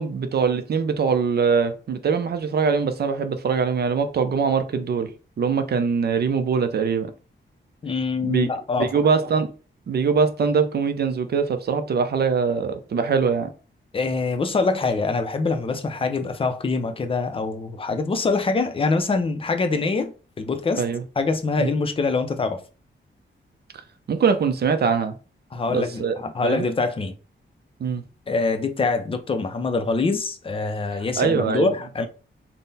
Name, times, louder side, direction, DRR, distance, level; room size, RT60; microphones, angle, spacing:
voice 1, 0.0-5.1 5.4-7.1 8.2-8.5 8.8-9.5 9.9-13.5 20.8-21.0 21.6-21.7 24.1-25.1 25.7-26.2 26.4-26.6 27.8-28.0 31.2-31.7, right 5 dB, 55° right, 0.5 m, -22 dB
voice 2, 7.8-8.9 13.9-20.8 21.2-22.6 25.5-27.1 28.3-32.1, left 4 dB, 25° left, 0.4 m, -24 dB
3.7 x 2.1 x 4.0 m
wide cardioid pair, 155°, 20 cm